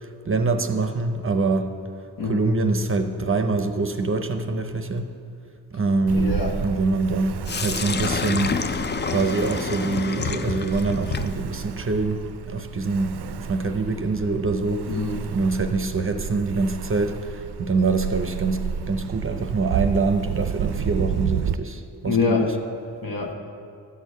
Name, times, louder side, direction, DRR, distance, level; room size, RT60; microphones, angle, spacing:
voice 1, 0.0-1.7 2.3-5.1 5.7-8.6 9.1-14.9 15.3-22.5, right 3 dB, 35° right, 7 dB, 0.6 m, -25 dB
voice 2, 6.1-6.6 14.9-15.3 22.1-22.5 23.0-23.3, left 4 dB, 60° left, 2 dB, 1.3 m, -25 dB
Ocean, 6.1-21.6, right 8 dB, 80° right, 0.5 m, -32 dB
Sink (filling or washing), 7.5-15.4, left 5 dB, 30° left, 0.4 m, -31 dB
13.0 x 4.5 x 8.2 m, 2.5 s
wide cardioid pair, 115°, 40 cm